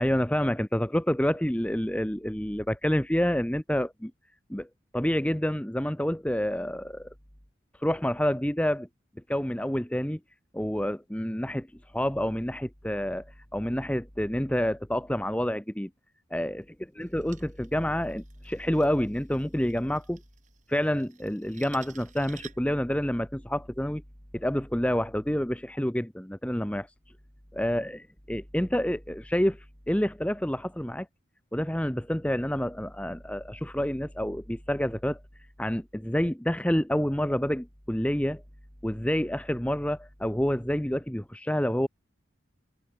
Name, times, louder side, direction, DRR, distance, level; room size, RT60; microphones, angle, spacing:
voice 1, 0.0-4.1 4.5-4.7 4.9-7.1 7.7-8.9 9.3-10.2 10.5-13.3 13.5-15.9 16.3-16.6 16.9-20.2 20.7-24.0 24.3-26.9 27.5-31.1 31.5-35.2 35.6-38.4 38.8-41.9, equal, 5° left, 0.9 m, -28 dB
sound 1, 17.0-22.8, right 8 dB, 40° right, 7.8 m, -53 dB
head